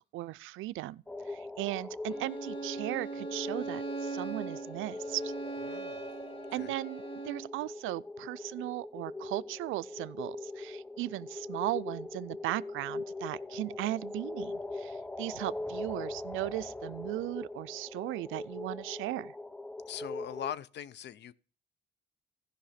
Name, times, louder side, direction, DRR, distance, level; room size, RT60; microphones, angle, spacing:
voice 1, 0.1-5.3 6.5-19.3, right 17 dB, 85° right, 0.4 m, -37 dB
sound 1, 1.1-20.5, left 2 dB, 5° left, 0.4 m, -41 dB
Bowed string instrument, 2.1-7.5, right 4 dB, 30° left, 1.8 m, -40 dB
voice 2, 5.7-6.1 6.5-6.7 19.9-21.3, left 10 dB, 60° left, 0.6 m, -41 dB
14.5 x 5.5 x 5.7 m
cardioid pair, 90°, 20 cm